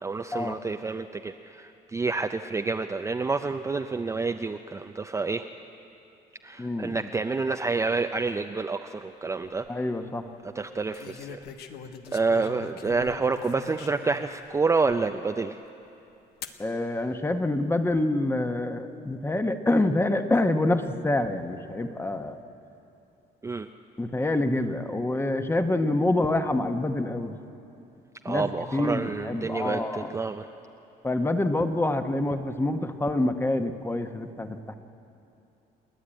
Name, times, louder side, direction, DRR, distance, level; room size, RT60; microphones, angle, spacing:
voice 1, 0.0-5.5 6.4-9.7 10.5-11.5 12.1-15.6 23.4-23.7 28.2-30.5, right 4 dB, 15° right, 6 dB, 0.5 m, -28 dB
voice 2, 6.6-7.1 9.7-10.3 16.6-22.4 24.0-27.4 28.3-30.1 31.0-34.7, left 2 dB, 15° left, 7 dB, 1.1 m, -26 dB
sound 1, 9.3-9.7 10.9-14.3 14.9-15.0 16.4-16.6 17.5-18.0, left 6 dB, 75° left, 1.1 m, -42 dB
29.5 x 10.0 x 8.9 m, 2.8 s
cardioid pair, 110°, 17 cm